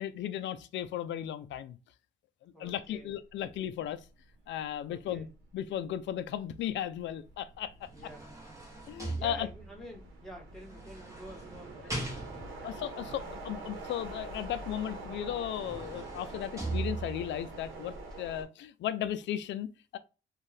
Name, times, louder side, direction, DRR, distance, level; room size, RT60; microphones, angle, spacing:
voice 1, 0.0-1.8 2.4-4.0 4.5-5.3 5.5-7.7 8.9-9.5 12.6-19.7 19.9-20.0, left 11 dB, 65° left, 0.4 m, -36 dB
voice 2, 2.5-3.7 4.9-5.3 7.9-8.3 9.2-12.0 12.3-13.3, equal, 5° left, 1.4 m, -49 dB
sound 1, 3.5-3.7 4.1-18.5, right 2 dB, 85° right, 0.9 m, -46 dB
sound 2, 7.6-9.9 10.7-12.7 14.9-15.0 15.4-17.4 18.0-18.1, right 2 dB, 15° right, 1.2 m, -39 dB
2.6 x 2.4 x 3.3 m
cardioid pair, 90°, 20 cm